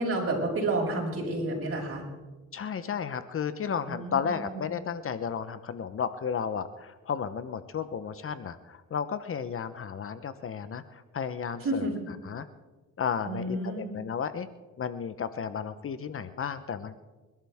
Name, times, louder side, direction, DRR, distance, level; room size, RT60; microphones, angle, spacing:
voice 1, 0.0-2.0 3.9-4.6 11.6-12.1 13.2-13.9, right 2 dB, 45° right, -2 dB, 6.3 m, -30 dB
voice 2, 2.5-11.9 12.2-12.5 13.0-14.5 14.8-17.0, left 7 dB, 45° left, 12 dB, 0.9 m, -33 dB
29.0 x 12.5 x 3.6 m, 1.2 s
cardioid pair, 90°, 30 cm